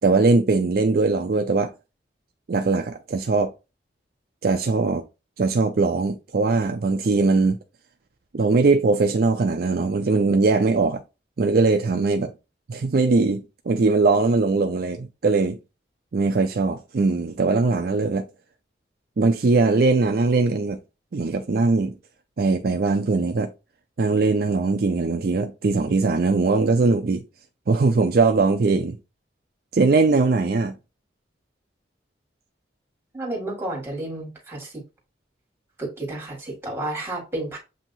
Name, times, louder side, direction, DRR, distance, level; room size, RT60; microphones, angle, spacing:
voice 1, 0.0-1.7 2.5-3.5 4.4-5.0 5.4-7.6 8.3-11.0 11.4-12.3 12.7-15.6 16.1-18.2 19.2-20.8 21.1-22.0 22.4-23.5 24.0-27.2 27.7-29.0 29.7-30.7, right 3 dB, 55° right, 0.4 m, -20 dB
voice 2, 33.1-34.8 35.8-37.6, right 2 dB, 15° right, 1.8 m, -31 dB
7.4 x 2.7 x 2.6 m
head